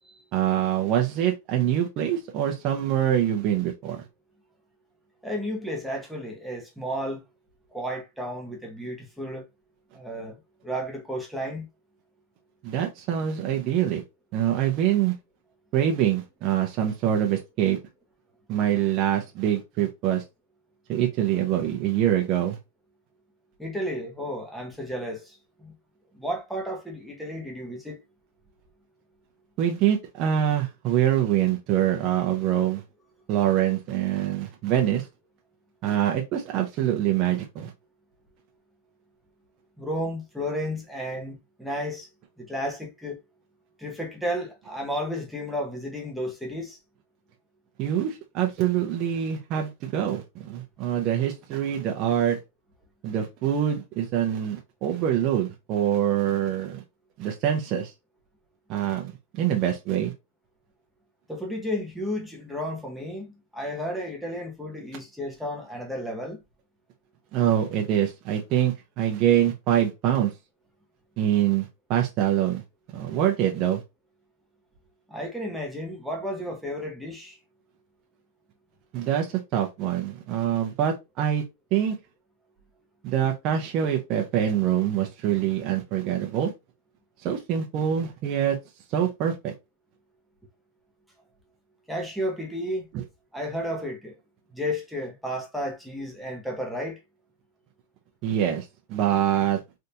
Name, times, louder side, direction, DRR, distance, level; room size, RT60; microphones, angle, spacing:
voice 1, 0.3-4.0 12.6-14.0 14.3-15.1 15.7-17.8 18.5-20.2 20.9-22.6 29.6-32.8 33.3-35.1 35.8-37.7 47.8-52.4 53.0-56.8 57.2-57.9 58.7-60.1 67.3-70.3 71.2-72.6 72.9-73.8 78.9-81.4 81.7-82.0 83.0-86.5 87.2-88.6 88.9-89.5 92.9-93.0 98.2-99.6, right 10 dB, 30° right, 0.6 m, -25 dB
voice 2, 5.2-7.2 7.7-9.5 9.9-11.7 23.6-25.7 26.1-28.0 39.8-42.1 42.4-43.2 43.8-46.8 61.3-66.4 75.1-77.4 91.9-92.9 93.3-94.2 94.5-97.0, equal, ahead, 0.8 m, -32 dB
3.4 x 2.7 x 2.7 m
supercardioid pair, 165°, 0 cm